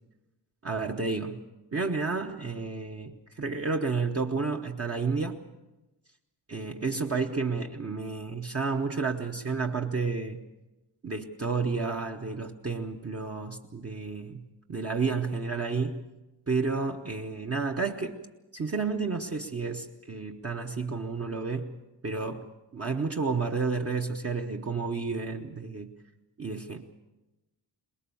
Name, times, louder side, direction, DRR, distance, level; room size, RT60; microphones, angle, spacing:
voice 1, 0.6-1.4 1.7-5.4 6.5-10.4 11.0-16.1 16.5-18.2 18.5-21.8 22.0-25.9 26.4-26.9, right 4 dB, 30° right, 2 dB, 0.9 m, -31 dB
23.0 x 21.0 x 7.0 m, 1.0 s
wide cardioid pair, 175°, 46 cm